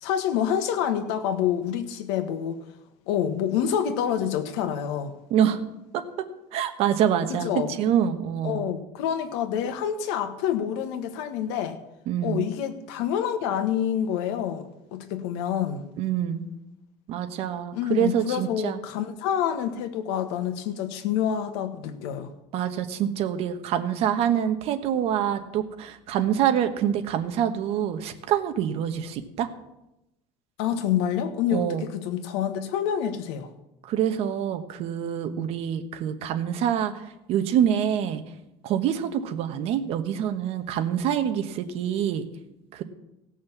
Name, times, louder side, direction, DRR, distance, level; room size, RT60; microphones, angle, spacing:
voice 1, 0.0-2.6 3.1-5.1 7.3-7.7 8.4-11.8 12.2-15.8 17.7-22.3 30.6-33.5, left 9 dB, 90° left, 9 dB, 1.4 m, -27 dB
voice 2, 5.3-5.6 5.9-6.3 6.5-8.7 12.1-12.5 16.0-16.4 17.1-18.8 22.5-29.5 31.5-31.9 33.8-38.2 38.6-42.3 42.7-42.8, right 9 dB, 50° right, 8 dB, 1.1 m, -26 dB
16.5 x 6.3 x 7.3 m, 0.91 s
cardioid pair, 165°, 14 cm